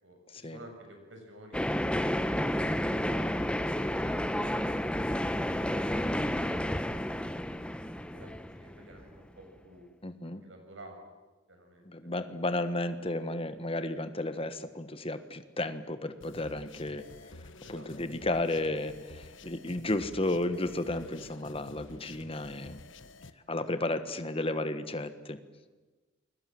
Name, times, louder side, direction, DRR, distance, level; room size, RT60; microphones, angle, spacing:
voice 1, 0.0-3.6 8.0-9.9 10.2-11.0 11.5-11.9 17.6-17.9 23.6-23.9, right 1 dB, 90° right, 4 dB, 7.1 m, -53 dB
sound 1, 1.5-9.2, equal, 5° left, 1.0 m, -31 dB
voice 2, 10.0-10.4 11.8-17.0 17.7-22.8 23.5-25.4, left 2 dB, 30° left, 10 dB, 1.5 m, -33 dB
sound 2, 16.2-23.3, left 2 dB, 80° left, 1.4 m, -50 dB
29.0 x 22.5 x 7.9 m, 1.2 s
head